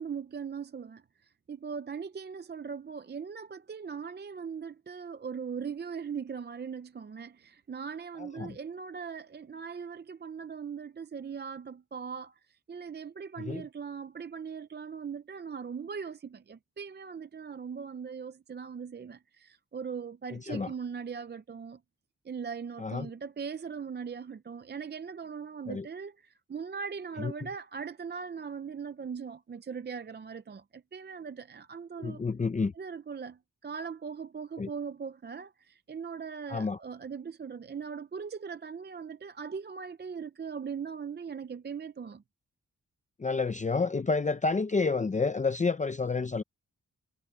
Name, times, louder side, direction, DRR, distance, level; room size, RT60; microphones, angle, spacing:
voice 1, 0.0-21.8 22.2-32.2 32.7-42.2, right 6 dB, 35° right, 0.5 m, -40 dB
voice 2, 20.3-20.7 22.8-23.1 25.7-25.9 27.2-27.3 32.0-32.7 34.6-34.7 36.5-36.8 43.2-46.4, left 4 dB, 25° left, 0.5 m, -29 dB
wide cardioid pair, 170°, 30 cm